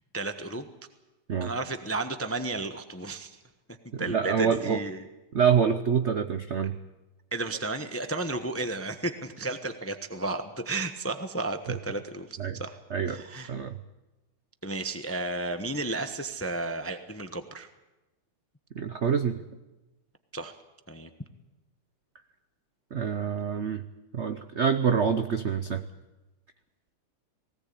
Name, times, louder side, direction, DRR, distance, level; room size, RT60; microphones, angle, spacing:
voice 1, 0.1-0.7 1.4-3.4 4.0-5.1 7.3-12.8 13.1-13.5 14.6-17.7 20.3-20.6 20.9-21.1, right 2 dB, 15° left, 8 dB, 0.4 m, -33 dB
voice 2, 3.9-4.8 5.3-6.8 12.4-12.6 12.9-13.2 13.5-13.8 18.7-19.4 22.9-23.8 24.1-25.8, right 7 dB, 80° right, 9 dB, 0.6 m, -26 dB
20.0 x 17.5 x 8.5 m, 1.0 s
omnidirectional pair, 2.3 m